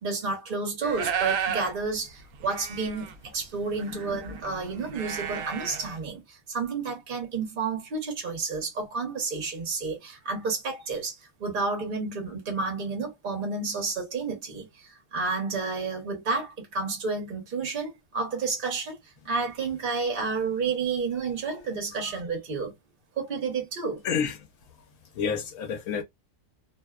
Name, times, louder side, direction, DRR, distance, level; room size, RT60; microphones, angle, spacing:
voice 1, 0.0-19.0 19.2-22.7 23.2-24.0, right 4 dB, 45° right, 1.1 m, -31 dB
sound 1, 0.8-1.7 2.1-2.2 2.3-6.0, right 7 dB, 75° right, 1.0 m, -33 dB
voice 2, 24.0-24.5 25.1-26.0, left 7 dB, 85° left, 1.0 m, -30 dB
2.7 x 2.1 x 2.3 m
omnidirectional pair, 1.4 m